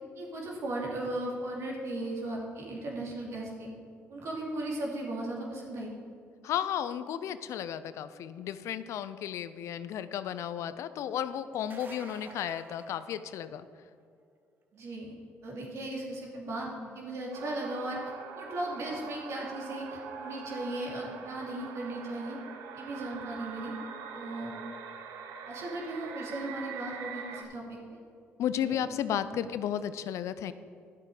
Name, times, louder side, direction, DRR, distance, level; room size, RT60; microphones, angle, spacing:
voice 1, 0.1-3.7 4.1-5.9 14.7-15.1 15.4-22.4 22.7-23.7 24.1-24.5 25.4-27.8 28.6-28.8 29.1-29.4, right 1 dB, 65° right, -2 dB, 2.7 m, -37 dB
voice 2, 6.4-13.7 28.4-30.5, left 9 dB, 70° left, 13 dB, 0.5 m, -33 dB
sound 1, 11.5-13.8 19.3-19.4 21.2-21.3, right 3 dB, 40° right, 1.2 m, -49 dB
sound 2, 17.3-27.4, right 6 dB, 85° right, 0.8 m, -43 dB
10.5 x 7.6 x 4.9 m, 2.3 s
supercardioid pair, 65°, 5 cm